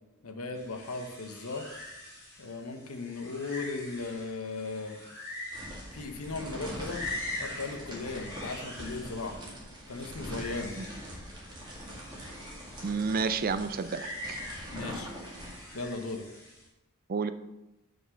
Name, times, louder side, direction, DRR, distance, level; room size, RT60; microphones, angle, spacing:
voice 1, 0.2-1.7 2.4-5.0 5.9-7.0 7.4-9.4 9.9-10.7 14.7-15.1 15.7-16.2, left 3 dB, 75° left, 5 dB, 1.0 m, -37 dB
sound 1, 0.5-16.7, left 2 dB, 15° left, 2.3 m, -44 dB
sound 2, 5.5-16.1, equal, 20° right, 2.2 m, -43 dB
voice 2, 12.8-14.4 17.1-17.3, right 5 dB, 40° right, 12 dB, 0.4 m, -30 dB
5.8 x 5.4 x 6.4 m, 0.97 s
head